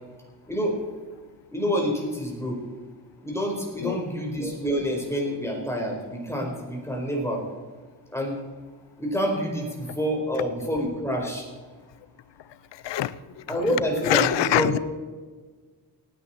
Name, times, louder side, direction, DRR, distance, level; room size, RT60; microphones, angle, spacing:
voice 1, 1.5-2.6 3.2-7.4 8.1-8.4 9.0-11.4 13.5-14.7, equal, 5° left, 0 dB, 4.7 m, -27 dB
voice 2, 12.7-13.2 13.5-13.6 14.0-14.8, left 13 dB, 85° left, 17 dB, 0.7 m, -24 dB
18.5 x 9.3 x 4.5 m, 1.4 s
cardioid pair, 95°, 42 cm